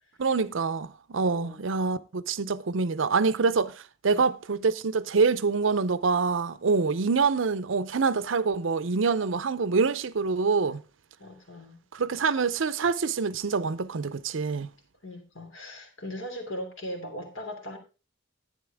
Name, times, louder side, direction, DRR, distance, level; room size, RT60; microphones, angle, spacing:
voice 1, 0.2-10.8 11.9-14.7, right 4 dB, 70° right, 0.6 m, -26 dB
voice 2, 1.2-1.6 4.1-4.2 11.2-11.8 15.0-17.8, equal, 75° left, 2.9 m, -39 dB
11.0 x 9.4 x 3.5 m
head